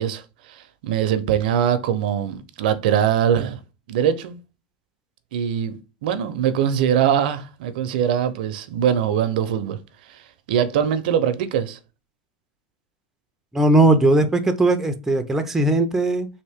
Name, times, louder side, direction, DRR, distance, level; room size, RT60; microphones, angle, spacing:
voice 1, 0.0-3.6 3.9-4.4 5.3-9.8 10.1-10.2 10.5-11.8, right 9 dB, 75° right, 0.5 m, -22 dB
voice 2, 13.5-16.3, right 2 dB, 5° right, 0.5 m, -18 dB
3.5 x 2.5 x 3.4 m
supercardioid pair, 130°, 5 cm